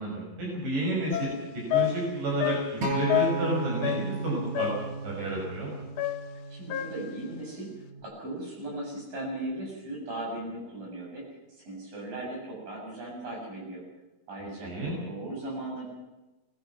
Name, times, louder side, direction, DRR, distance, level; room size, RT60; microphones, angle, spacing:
voice 1, 0.0-4.7 5.0-5.7 14.6-14.9, right 1 dB, 75° right, -2 dB, 7.9 m, -31 dB
sound 1, 1.1-4.3 4.6-5.0 6.0-7.2, left 14 dB, 70° left, 2.2 m, -30 dB
Acoustic guitar, 2.8-7.1 7.9-8.0, right 2 dB, 45° right, 6.3 m, -34 dB
voice 2, 6.5-7.7 8.0-11.3 11.6-13.8 14.3-14.7 15.0-15.8, right 1 dB, 90° right, -2 dB, 8.7 m, -37 dB
25.5 x 19.5 x 6.1 m, 1.1 s
omnidirectional pair, 3.8 m